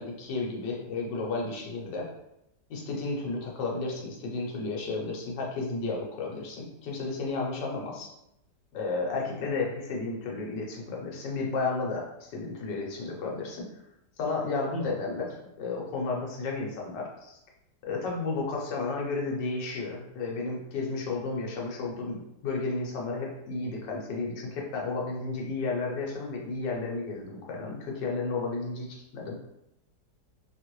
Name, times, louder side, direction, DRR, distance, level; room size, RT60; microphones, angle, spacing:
voice 1, 0.0-2.1 2.7-8.1 8.7-13.7 14.2-17.4 17.8-29.4, left 3 dB, 70° left, -2 dB, 1.4 m, -32 dB
3.3 x 2.5 x 3.0 m, 0.83 s
omnidirectional pair, 2.0 m